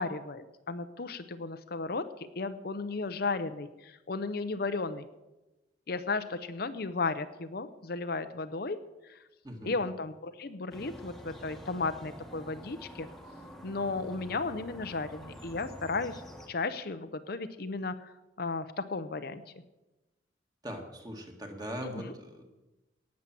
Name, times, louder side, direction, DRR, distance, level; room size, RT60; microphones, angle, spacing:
voice 1, 0.0-5.1 5.9-9.2 9.6-13.1 13.6-16.2 16.5-19.4 21.8-21.9, left 3 dB, 50° left, 10 dB, 0.6 m, -34 dB
voice 2, 9.4-9.8 20.6-22.4, equal, 20° right, 3 dB, 1.9 m, -40 dB
sound 1, 10.7-16.5, equal, ahead, 1.3 m, -47 dB
18.0 x 7.4 x 7.5 m, 1.0 s
head